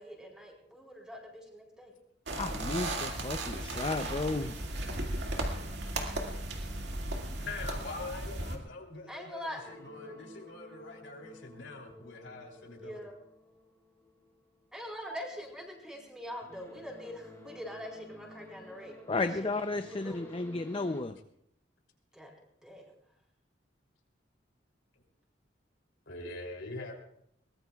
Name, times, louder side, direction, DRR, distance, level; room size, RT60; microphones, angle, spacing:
voice 1, 0.0-1.9 9.1-9.6 12.8-13.1 14.7-19.5 19.9-20.4 22.1-22.3 22.6-22.8, equal, 5° right, -1 dB, 4.2 m, -43 dB
sound 1, 2.3-8.6, right 1 dB, 70° right, 2.1 m, -36 dB
voice 2, 2.4-4.5 19.1-21.2, left 3 dB, 30° left, 8 dB, 0.5 m, -33 dB
voice 3, 7.4-13.0 26.1-26.9, left 3 dB, 90° left, 2 dB, 3.1 m, -43 dB
sound 2, 9.6-14.9 15.2-21.0, left 2 dB, 15° left, 3.1 m, -53 dB
22.5 x 19.5 x 2.4 m, 0.71 s
head